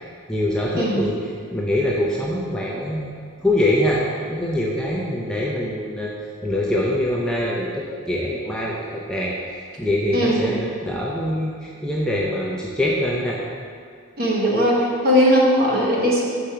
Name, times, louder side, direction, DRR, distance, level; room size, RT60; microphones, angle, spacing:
voice 1, 0.3-1.1 1.5-3.1 3.4-6.1 6.4-9.3 9.8-13.4, left 1 dB, 5° left, -5 dB, 0.4 m, -24 dB
voice 2, 10.1-10.5 14.2-16.3, equal, 45° right, -4 dB, 1.1 m, -18 dB
5.0 x 4.3 x 5.7 m, 2.2 s
head